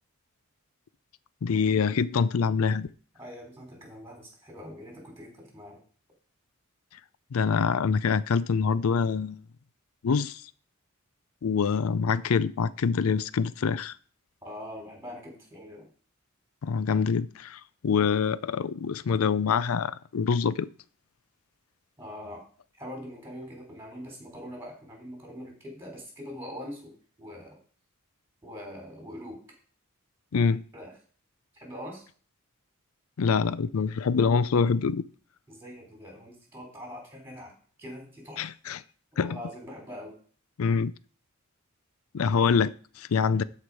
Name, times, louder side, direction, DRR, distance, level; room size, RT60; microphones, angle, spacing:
voice 1, 1.4-2.9 7.3-9.4 10.0-10.4 11.4-13.9 16.6-20.7 30.3-30.6 33.2-35.1 38.4-38.8 39.2-39.4 40.6-40.9 42.1-43.4, left 5 dB, 90° left, 0.4 m, -25 dB
voice 2, 3.2-5.8 14.4-15.9 22.0-22.4 22.8-27.6 28.4-29.4 30.7-30.9 31.5-32.1 35.5-37.5 37.8-38.4 39.1-40.2, equal, 10° right, 3.7 m, -43 dB
13.0 x 4.7 x 4.8 m
head